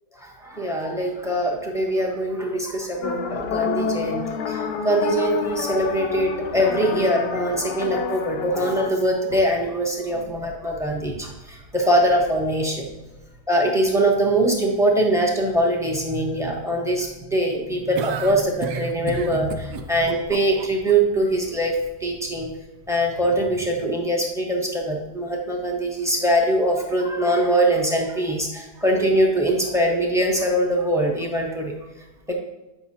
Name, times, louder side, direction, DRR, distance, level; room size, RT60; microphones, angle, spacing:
voice 1, 0.2-12.8 13.5-22.5 22.9-31.7 32.3-32.4, right 1 dB, ahead, 0 dB, 0.9 m, -22 dB
sound 1, 3.0-8.9, left 5 dB, 85° left, 1.3 m, -28 dB
sound 2, 17.9-20.9, right 8 dB, 85° right, 1.2 m, -34 dB
8.2 x 5.8 x 2.8 m, 1.0 s
omnidirectional pair, 1.8 m